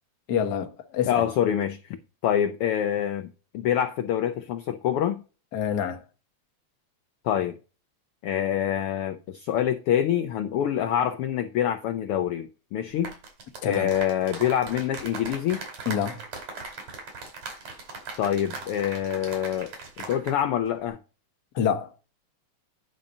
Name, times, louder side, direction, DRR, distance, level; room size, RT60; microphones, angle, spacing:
voice 1, 0.3-1.3 5.5-6.0 13.6-13.9 15.8-16.3 21.5-21.9, left 8 dB, 60° left, 1.0 m, -27 dB
voice 2, 1.1-3.3 3.5-5.2 7.2-7.6 8.2-13.1 13.6-15.6 18.2-19.7 20.1-21.0, left 10 dB, 75° left, 1.3 m, -26 dB
sound 1, 12.9-20.4 20.7-20.9, right 4 dB, 65° right, 3.9 m, -39 dB
10.0 x 3.9 x 5.3 m
omnidirectional pair, 3.3 m